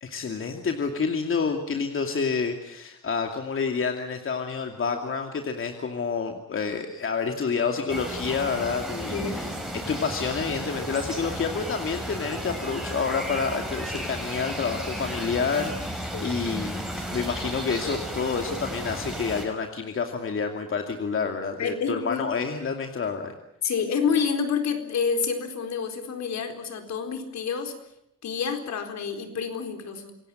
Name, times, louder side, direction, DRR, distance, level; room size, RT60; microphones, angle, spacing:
voice 1, 0.0-23.3, left 5 dB, 45° left, 4 dB, 2.5 m, -29 dB
sound 1, 7.9-19.5, right 1 dB, ahead, 6.1 m, -33 dB
voice 2, 9.1-9.4 16.1-16.4 21.6-22.2 23.6-27.7 28.2-30.2, left 6 dB, 65° left, 6 dB, 4.3 m, -28 dB
27.0 x 17.0 x 9.1 m, 0.80 s
cardioid pair, 90°, 30 cm